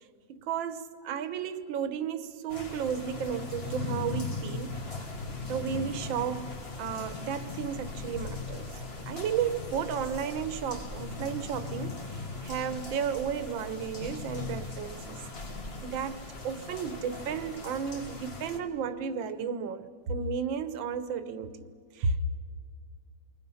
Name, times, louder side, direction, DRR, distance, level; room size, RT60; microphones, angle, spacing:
voice 1, 0.3-4.8 5.5-8.7 9.1-15.2 15.8-22.2, right 7 dB, 70° right, 1.7 m, -33 dB
sound 1, 2.5-18.6, left 3 dB, 30° left, 1.6 m, -39 dB
28.5 x 24.0 x 5.6 m
omnidirectional pair, 2.3 m